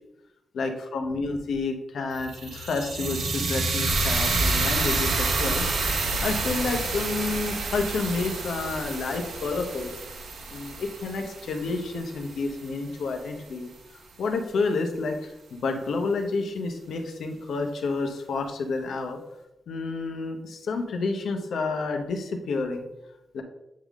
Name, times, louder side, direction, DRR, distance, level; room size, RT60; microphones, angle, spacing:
voice 1, 0.5-5.6 6.2-9.9 10.5-19.2 19.7-22.8 23.3-23.4, left 3 dB, 75° left, 4 dB, 0.9 m, -30 dB
sound 1, 2.1-12.3, right 3 dB, 75° right, 1.0 m, -28 dB
8.6 x 3.7 x 3.6 m, 0.89 s
wide cardioid pair, 160°, 0 cm